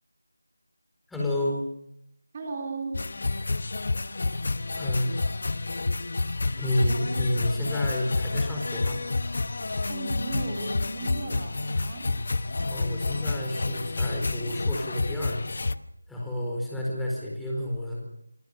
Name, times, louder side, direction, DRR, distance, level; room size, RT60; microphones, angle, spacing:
voice 1, 1.1-1.7 4.8-5.2 6.6-9.1 12.6-15.6 16.1-18.0, left 1 dB, ahead, -5 dB, 4.3 m, -30 dB
voice 2, 2.3-3.0 9.9-12.1, right 3 dB, 25° right, 1 dB, 3.5 m, -35 dB
sound 1, 2.9-15.7, left 3 dB, 50° left, 1.0 m, -29 dB
sound 2, 5.9-6.1 6.5-6.6 7.0-7.2 7.6-7.7 8.2-8.3 8.7-8.9 9.3-9.5 9.8-9.9 10.4-10.5 10.9-11.1 11.5-11.6 12.0-12.2 12.6-12.7 13.1-13.3 13.6-13.7 14.1-14.3, left 2 dB, 65° left, 7.7 m, -46 dB
26.5 x 19.0 x 6.9 m, 0.78 s
figure-of-eight pair, 170°, 0 cm